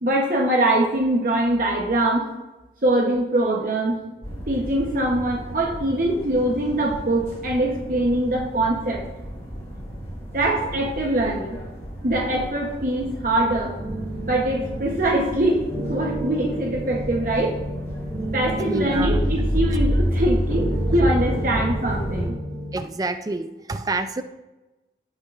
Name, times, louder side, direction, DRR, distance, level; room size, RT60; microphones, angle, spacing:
voice 1, 0.0-2.2 2.8-4.0 4.5-9.0 10.3-11.6 12.0-13.7 14.3-17.5 18.3-20.6 20.9-22.4, right 1 dB, 50° right, -1 dB, 1.0 m, -23 dB
sound 1, 4.2-22.3, equal, 15° left, 2.8 m, -30 dB
sound 2, 13.8-22.8, right 1 dB, ahead, 1.4 m, -33 dB
voice 2, 18.6-19.2 21.6-21.7 22.7-24.2, right 2 dB, 20° right, 10 dB, 0.4 m, -28 dB
16.0 x 6.5 x 2.5 m, 1.1 s
head